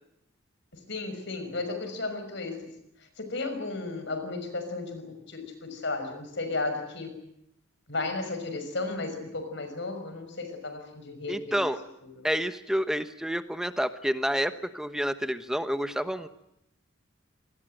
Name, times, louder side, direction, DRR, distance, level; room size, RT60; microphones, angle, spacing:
voice 1, 0.7-2.7 3.0-7.2 7.9-11.7 12.0-12.2, left 3 dB, 55° left, 8 dB, 5.9 m, -34 dB
voice 2, 11.3-11.8 12.2-16.3, equal, 5° right, 11 dB, 1.1 m, -29 dB
26.5 x 20.0 x 7.8 m, 0.81 s
head